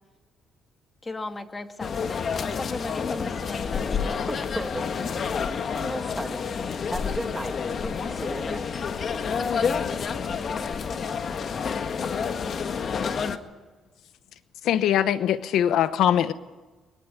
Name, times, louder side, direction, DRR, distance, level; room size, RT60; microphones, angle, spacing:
voice 1, 1.0-4.3, left 2 dB, 25° left, 2.3 m, -37 dB
sound 1, 1.8-13.4, left 6 dB, 55° left, 1.6 m, -29 dB
voice 2, 4.3-4.9 5.7-6.5 6.9-8.7, right 1 dB, 10° right, 2.0 m, -35 dB
voice 3, 14.6-16.3, left 10 dB, 80° left, 0.9 m, -22 dB
22.5 x 22.0 x 9.7 m
cardioid pair, 90°, 0 cm